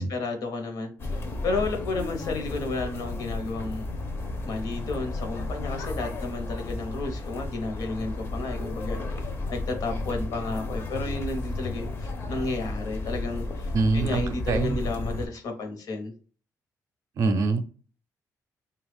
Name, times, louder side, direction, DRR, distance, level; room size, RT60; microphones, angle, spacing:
voice 1, 0.0-3.9 4.4-16.1, left 3 dB, 75° left, 5 dB, 0.8 m, -32 dB
sound 1, 1.0-15.3, left 2 dB, 35° left, 0.5 m, -33 dB
voice 2, 13.7-14.2 14.5-14.8 17.2-17.6, right 3 dB, 55° right, 8 dB, 0.5 m, -24 dB
3.1 x 2.3 x 3.3 m, 0.39 s
cardioid pair, 165°, 6 cm